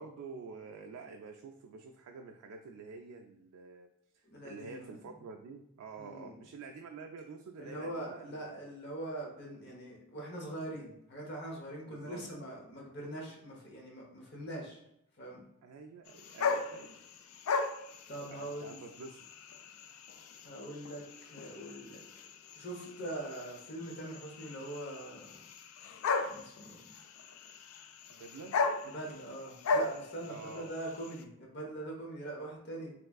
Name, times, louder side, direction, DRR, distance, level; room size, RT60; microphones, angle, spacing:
voice 1, 0.0-3.9 4.1-8.6 11.8-12.2 15.6-16.9 18.3-19.2 28.1-28.6 30.3-30.7, right 4 dB, 85° right, 3 dB, 0.3 m, -48 dB
voice 2, 4.3-5.0 6.0-6.3 7.6-14.8 15.2-15.4 18.1-18.8 20.4-22.0 22.6-25.4 26.2-26.9 28.8-32.9, right 1 dB, 50° left, -1 dB, 0.8 m, -43 dB
sound 1, 16.1-31.2, left 4 dB, 70° left, 0.3 m, -38 dB
3.5 x 3.1 x 2.3 m, 0.78 s
head